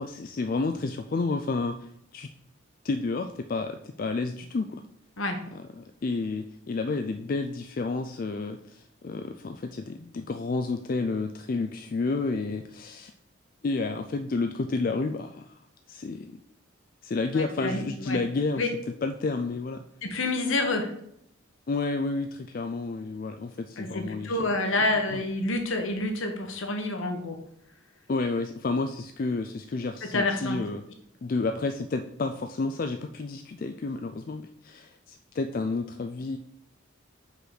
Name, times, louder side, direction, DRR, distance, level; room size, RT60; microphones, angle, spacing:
voice 1, 0.0-2.3 2.8-4.8 5.5-13.1 13.6-15.5 15.9-16.4 17.0-19.8 21.7-24.5 25.1-25.2 28.1-30.8 31.2-36.4, left 3 dB, 45° left, 7 dB, 0.3 m, -30 dB
voice 2, 17.3-18.2 18.6-18.7 20.0-20.9 23.8-27.3 30.1-30.6, left 2 dB, 75° left, 5 dB, 1.2 m, -28 dB
5.6 x 4.0 x 6.0 m, 0.74 s
head